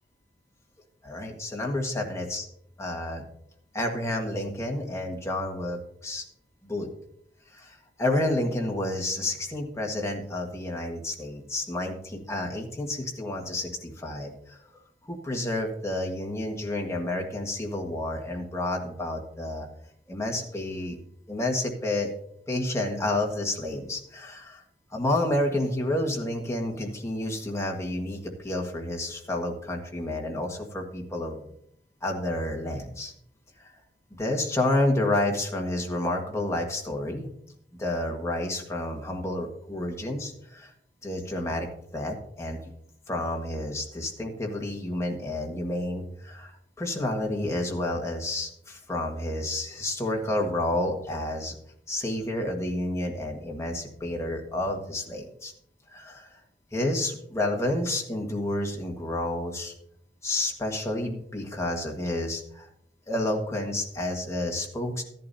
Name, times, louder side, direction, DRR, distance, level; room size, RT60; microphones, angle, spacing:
voice 1, 1.0-2.4 2.8-3.2 3.7-6.2 6.6-6.9 7.5-14.6 15.0-19.7 20.1-21.0 21.3-22.1 22.5-24.6 24.9-31.4 32.0-33.1 33.6-33.7 34.2-37.3 37.8-40.7 41.0-42.7 43.1-51.5 51.9-55.5 55.9-56.4 56.7-59.7 60.2-62.7 63.1-65.0, left 1 dB, 15° left, 1 dB, 1.6 m, -30 dB
14.0 x 11.0 x 2.7 m, 0.72 s
head